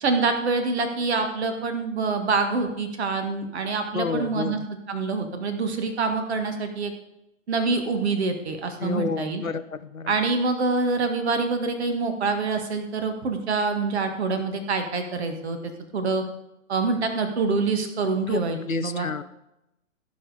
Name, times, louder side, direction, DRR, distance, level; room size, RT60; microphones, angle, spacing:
voice 1, 0.0-6.9 7.5-9.4 10.1-16.2 16.7-19.1, right 4 dB, 55° right, 7 dB, 1.8 m, -26 dB
voice 2, 3.9-4.7 8.8-10.1 18.3-18.4 18.7-19.2, left 5 dB, 90° left, 13 dB, 0.7 m, -29 dB
16.0 x 5.5 x 4.9 m, 0.88 s
figure-of-eight pair, 115°, 40 cm